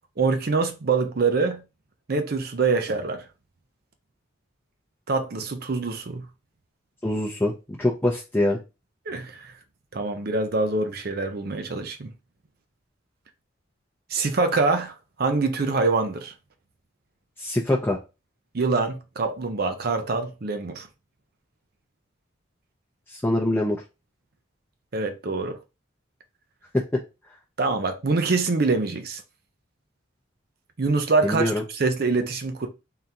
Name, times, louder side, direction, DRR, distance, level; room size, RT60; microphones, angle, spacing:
voice 1, 0.2-1.6 2.1-3.3 5.1-6.3 9.1-9.5 9.9-12.1 14.1-16.3 18.5-20.9 24.9-25.6 27.6-29.2 30.8-32.7, right 3 dB, 50° right, 0.6 m, -25 dB
voice 2, 7.0-8.6 17.4-18.0 23.1-23.8 26.7-26.8 31.2-31.6, left 1 dB, 10° left, 0.6 m, -24 dB
3.7 x 3.4 x 2.8 m
head